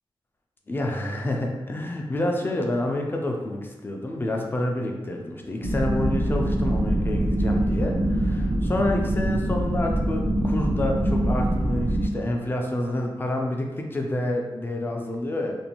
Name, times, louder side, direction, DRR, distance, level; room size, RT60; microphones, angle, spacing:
voice 1, 0.7-15.6, left 1 dB, 25° left, 1 dB, 0.3 m, -28 dB
sound 1, 5.6-12.1, right 1 dB, 80° right, 0.5 m, -24 dB
2.6 x 2.2 x 2.8 m, 1.2 s
wide cardioid pair, 175°, 9 cm